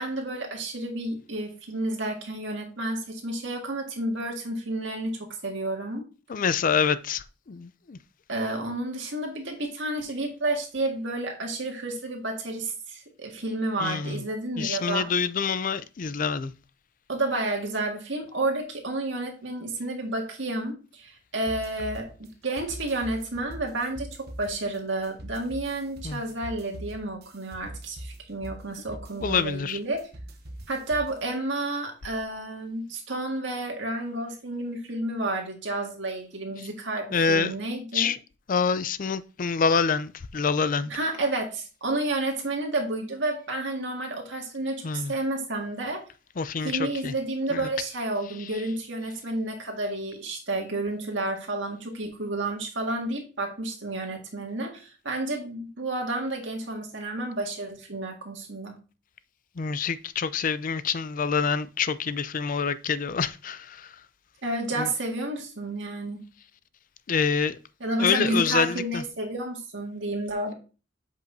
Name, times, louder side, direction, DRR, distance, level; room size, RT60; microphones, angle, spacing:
voice 1, 0.0-6.1 8.3-15.1 17.1-30.1 30.7-38.1 40.9-46.0 46.6-58.8 64.4-66.2 67.8-70.5, right 2 dB, 70° right, 1.9 m, -31 dB
voice 2, 6.3-8.0 13.8-14.2 14.6-16.5 26.0-26.2 29.2-29.8 37.1-37.6 37.9-38.2 38.5-40.9 44.8-45.1 46.4-47.1 47.5-47.7 59.6-64.0 64.8-64.9 67.1-67.6 68.0-69.0, left 5 dB, 45° left, 0.4 m, -26 dB
sound 1, 21.4-31.2, right 1 dB, 55° right, 1.0 m, -43 dB
7.6 x 5.5 x 2.7 m
head